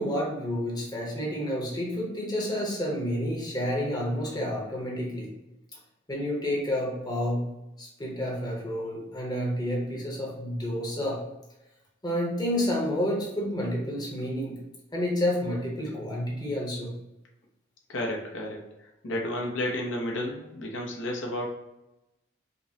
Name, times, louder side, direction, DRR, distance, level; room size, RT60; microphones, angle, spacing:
voice 1, 0.0-5.3 6.1-7.5 7.8-11.2 12.0-14.6 14.9-16.9, equal, 20° left, -3 dB, 0.8 m, -29 dB
voice 2, 17.9-18.6 19.0-21.5, left 1 dB, 75° left, -1 dB, 0.7 m, -31 dB
5.1 x 2.1 x 2.7 m, 0.94 s
head